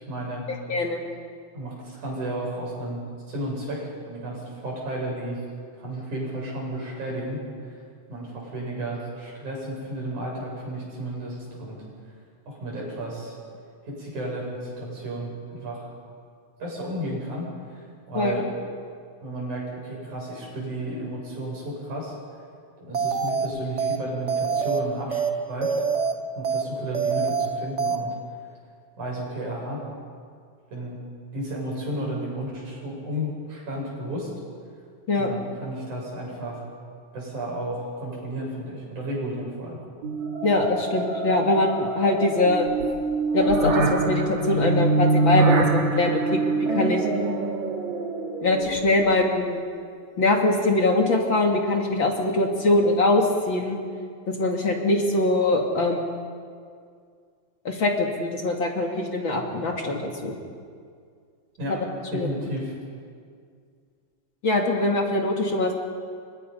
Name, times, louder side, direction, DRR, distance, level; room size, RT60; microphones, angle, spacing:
voice 1, 0.1-0.5 1.5-5.4 5.7-7.4 8.1-11.8 12.5-13.3 13.8-15.9 16.6-18.5 19.2-22.1 22.8-25.7 26.4-28.1 29.0-29.8 30.7-31.0 31.3-34.3 35.1-36.6 37.1-39.8 61.6-61.8 62.1-62.7, right 1 dB, 90° right, -3 dB, 8.9 m, -33 dB
voice 2, 0.7-1.0 18.1-18.4 35.1-35.3 40.4-42.7 43.3-47.0 48.4-49.6 50.2-53.8 54.3-56.2 57.6-60.3 61.7-61.8 62.1-62.3 64.4-65.7, left 2 dB, 45° left, 1 dB, 2.7 m, -23 dB
sound 1, 22.9-23.5 23.8-24.0 24.3-24.8 25.1-25.3 25.6-26.1 26.4-26.6 26.9-27.5 27.8-28.0, right 5 dB, 55° right, 0.7 m, -25 dB
sound 2, 40.0-49.1, right 3 dB, 70° right, 3.8 m, -25 dB
29.0 x 25.5 x 5.6 m, 2.2 s
omnidirectional pair, 3.4 m